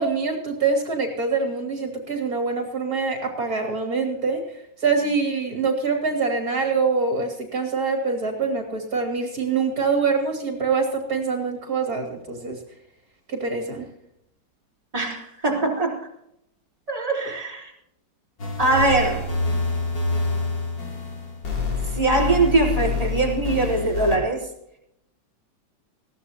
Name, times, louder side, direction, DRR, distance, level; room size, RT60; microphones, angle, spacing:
voice 1, 0.0-4.4 4.8-12.6 13.3-13.8, right 4 dB, 50° right, 3 dB, 3.1 m, -24 dB
voice 2, 14.9-16.0 16.9-17.7 18.6-19.3 21.9-24.5, right 2 dB, 20° right, -2 dB, 4.2 m, -22 dB
sound 1, 18.4-24.2, left 3 dB, 70° left, 3.7 m, -27 dB
21.0 x 16.5 x 2.9 m, 0.77 s
omnidirectional pair, 2.0 m